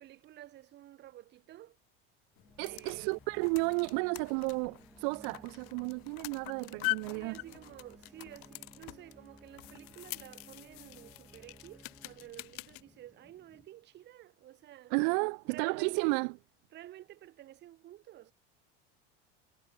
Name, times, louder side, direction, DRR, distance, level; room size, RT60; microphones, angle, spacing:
voice 1, 0.0-1.8 2.6-3.1 7.1-14.9 15.4-16.1 16.7-18.3, right 13 dB, 35° right, 2.3 m, -51 dB
sound 1, 2.3-13.9, right 1 dB, 5° right, 0.5 m, -58 dB
sound 2, 2.4-12.8, left 29 dB, 50° left, 0.5 m, -43 dB
voice 2, 2.6-7.4 14.9-16.3, right 40 dB or more, 65° right, 0.5 m, -32 dB
sound 3, 8.9-13.7, left 5 dB, 15° left, 4.8 m, -73 dB
cardioid pair, 165°, 29 cm